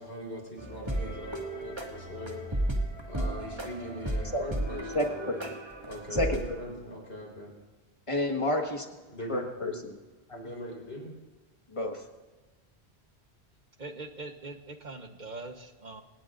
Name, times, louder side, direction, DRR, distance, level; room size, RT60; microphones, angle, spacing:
voice 1, 0.0-2.6 3.1-5.5 5.9-7.5 9.1-9.8 10.3-11.1, equal, 70° left, -1 dB, 4.5 m, -41 dB
sound 1, 0.6-6.5, right 1 dB, 25° right, 2.0 m, -34 dB
voice 2, 8.1-8.9 9.3-9.7 10.3-10.4 11.7-12.0, left 1 dB, 30° left, 3 dB, 1.6 m, -29 dB
voice 3, 13.8-16.0, right 3 dB, 45° right, 6 dB, 1.2 m, -42 dB
26.0 x 18.5 x 2.6 m, 1.2 s
omnidirectional pair, 1.1 m